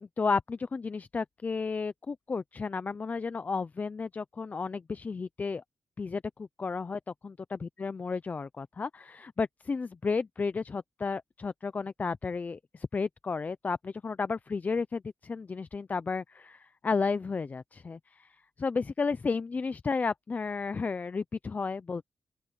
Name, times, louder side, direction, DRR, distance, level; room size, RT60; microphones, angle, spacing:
voice 1, 0.0-5.6 6.0-18.3 18.6-22.0, left 4 dB, 25° left, 0.4 m, -33 dB
open air
wide cardioid pair, 165°, 6 cm